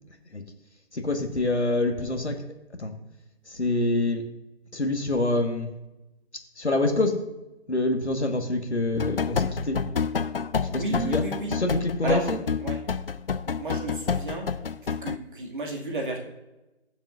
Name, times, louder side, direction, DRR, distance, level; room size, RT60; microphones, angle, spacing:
voice 1, 0.1-0.4 0.9-2.4 2.8-2.9 3.4-4.2 4.7-5.7 6.5-7.2 7.7-9.8 10.6-11.2 11.5-12.4, left 2 dB, 80° left, 4 dB, 1.7 m, -26 dB
sound 1, 8.9-15.2, left 6 dB, 60° left, 0.5 m, -29 dB
voice 2, 10.6-11.6 12.0-12.3 12.6-12.8 13.6-14.5 15.0-16.2, right 2 dB, 50° right, 0 dB, 2.4 m, -32 dB
21.5 x 7.2 x 2.6 m, 1.0 s
figure-of-eight pair, 150°, 33 cm